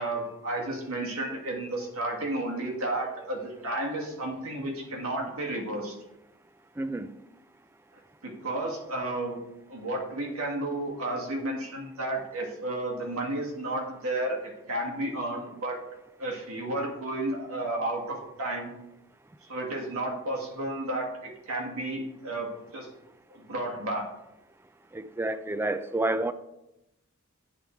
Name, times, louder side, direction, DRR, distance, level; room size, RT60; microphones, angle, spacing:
voice 1, 0.0-6.0 7.9-9.4 9.7-15.8 16.2-18.7 19.5-22.9 23.3-24.1, right 1 dB, 80° right, 1.7 m, -32 dB
voice 2, 6.8-7.1 24.9-26.3, right 2 dB, 10° right, 0.3 m, -29 dB
9.8 x 3.6 x 4.4 m
head